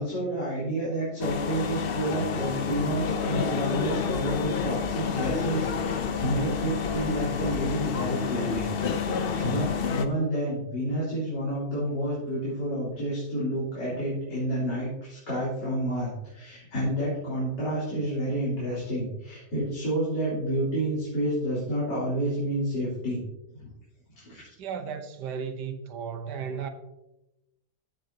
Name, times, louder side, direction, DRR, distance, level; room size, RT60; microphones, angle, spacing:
voice 1, 0.0-8.7 9.0-23.2 23.5-23.7 24.1-24.5, right 1 dB, 70° left, 4.0 m, -29 dB
sound 1, 1.2-10.1, left 6 dB, 90° left, 0.5 m, -29 dB
voice 2, 24.6-26.7, right 6 dB, 70° right, 1.5 m, -34 dB
14.5 x 6.9 x 2.8 m
omnidirectional pair, 1.9 m